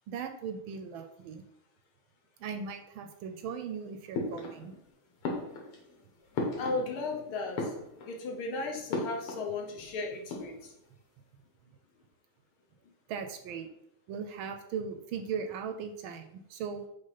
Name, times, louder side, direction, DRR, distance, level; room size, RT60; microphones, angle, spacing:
voice 1, 0.1-1.4 2.4-4.7 13.1-13.7 14.1-16.8, right 6 dB, 75° right, 7 dB, 1.3 m, -38 dB
sound 1, 4.1-4.9 5.2-7.2 7.5-8.3 8.9-9.5 9.8-9.9 10.1-10.9, left 3 dB, 90° left, 2.2 m, -36 dB
voice 2, 6.5-7.8 8.1-10.7, left 3 dB, 75° left, 1 dB, 1.9 m, -35 dB
5.4 x 3.4 x 5.7 m, 0.78 s
omnidirectional pair, 2.4 m